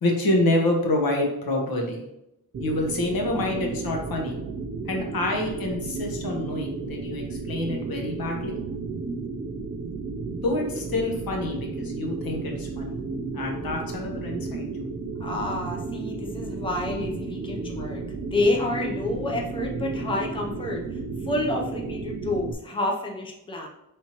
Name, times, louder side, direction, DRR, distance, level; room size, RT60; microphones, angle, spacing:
voice 1, 0.0-2.0 2.6-4.4 4.9-8.6 10.4-12.9 13.3-14.7, left 1 dB, 90° left, 1 dB, 1.0 m, -27 dB
sound 1, 2.5-22.5, right 3 dB, 45° right, 0.4 m, -33 dB
voice 2, 15.2-18.0 18.3-20.8 21.3-23.7, left 2 dB, 15° left, 0 dB, 0.5 m, -28 dB
4.3 x 3.4 x 2.9 m, 0.85 s
wide cardioid pair, 170°, 34 cm